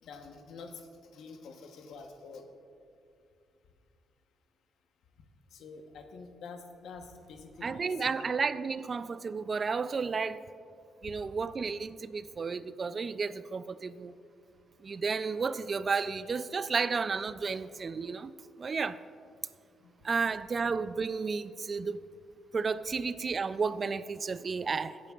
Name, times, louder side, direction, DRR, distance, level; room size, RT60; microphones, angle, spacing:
voice 1, 0.0-2.5 5.5-8.3 19.8-19.9, left 4 dB, 75° left, 6 dB, 1.0 m, -47 dB
voice 2, 7.6-10.4 11.0-14.1 14.8-18.3 18.6-19.0 20.0-22.0 22.5-25.0, right 5 dB, 40° right, 15 dB, 0.3 m, -32 dB
17.5 x 9.2 x 2.4 m, 2.5 s
cardioid pair, 90°, 0 cm